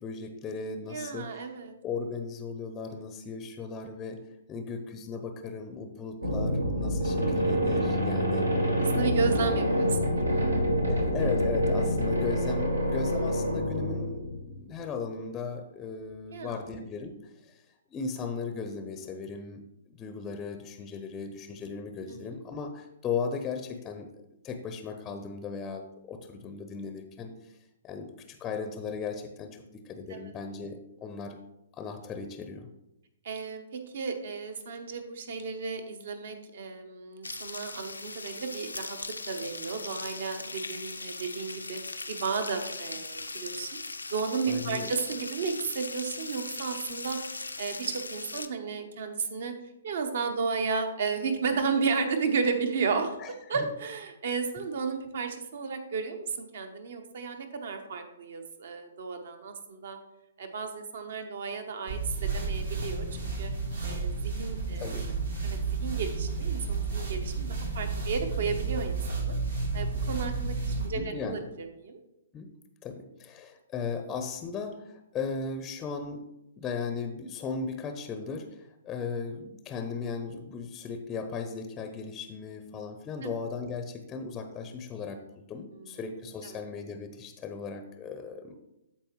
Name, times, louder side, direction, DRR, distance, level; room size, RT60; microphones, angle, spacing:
voice 1, 0.0-1.4 1.8-4.2 4.5-8.5 10.9-17.6 17.9-24.1 24.4-27.5 27.8-31.4 31.7-32.7 44.5-44.9 53.2-53.7 64.8-65.1 65.4-65.5 70.9-71.4 72.3-72.5 72.8-76.3 76.6-88.6, left 5 dB, 20° left, 7 dB, 0.6 m, -37 dB
voice 2, 0.8-1.7 7.3-7.6 8.8-10.5 16.3-16.6 22.1-22.3 30.1-30.3 33.2-41.8 42.1-43.7 44.1-47.2 47.6-49.5 49.8-53.2 53.5-60.0 60.4-63.5 63.8-64.9 65.4-69.3 69.7-72.0 83.2-83.3 85.7-86.0 86.4-86.6, right 5 dB, 55° right, 7 dB, 1.0 m, -33 dB
sound 1, 6.2-14.5, equal, 90° right, 1.4 m, -27 dB
sound 2, 37.2-48.5, left 3 dB, 80° left, 0.5 m, -39 dB
sound 3, 61.9-70.9, right 4 dB, 70° right, 2.1 m, -31 dB
13.0 x 4.3 x 3.0 m, 0.89 s
figure-of-eight pair, 120°, 0 cm